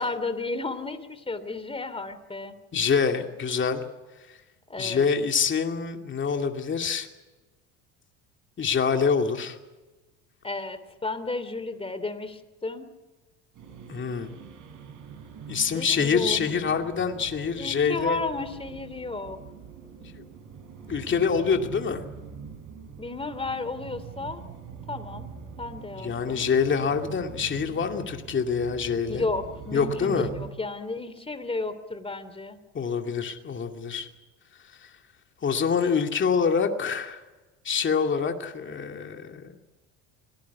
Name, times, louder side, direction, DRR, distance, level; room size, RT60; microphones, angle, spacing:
voice 1, 0.0-2.5 4.7-5.1 10.4-12.9 15.7-16.4 17.6-19.4 23.0-24.4 24.9-25.3 25.6-26.5 29.1-32.6, left 3 dB, 15° left, 11 dB, 3.2 m, -33 dB
voice 2, 2.7-3.8 4.8-7.1 8.6-9.6 13.9-14.4 15.5-18.2 20.0-20.2 20.9-22.0 26.0-29.2 29.7-30.3 32.7-34.1 34.8-34.9 35.4-37.2 37.6-39.5, left 6 dB, 35° left, 4 dB, 2.5 m, -26 dB
sound 1, 13.5-30.5, right 7 dB, 60° right, 6.3 m, -42 dB
25.5 x 18.5 x 8.3 m, 1.2 s
supercardioid pair, 95°, 35 cm